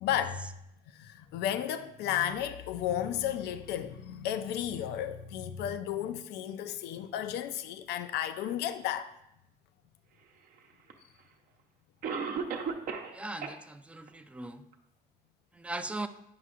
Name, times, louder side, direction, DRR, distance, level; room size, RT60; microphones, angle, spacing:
voice 1, 0.0-0.5 1.0-9.1, left 10 dB, 80° left, 0.5 m, -33 dB
Cough, 10.9-11.0 12.0-13.2 13.4-13.5 14.1-14.2 14.7-14.8, right 5 dB, 55° right, 0.8 m, -34 dB
voice 2, 13.1-14.6 15.6-16.1, right 2 dB, 5° right, 0.4 m, -39 dB
9.5 x 5.4 x 2.5 m
cardioid pair, 110°, 17 cm